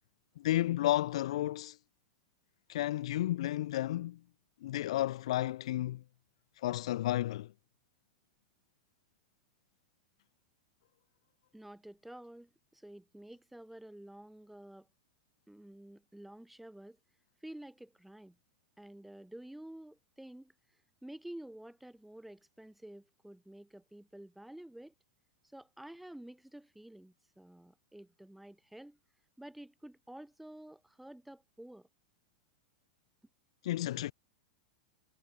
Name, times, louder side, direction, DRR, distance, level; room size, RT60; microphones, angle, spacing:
voice 1, 0.4-1.8 2.7-4.2 4.6-6.0 6.6-7.5 33.6-34.1, left 14 dB, 55° left, 0.9 m, -32 dB
voice 2, 11.5-14.9 15.5-17.0 17.4-18.4 18.8-20.5 21.0-24.9 25.5-29.0 29.4-31.9, right 1 dB, 5° right, 2.2 m, -50 dB
figure-of-eight pair, 95°, 4 cm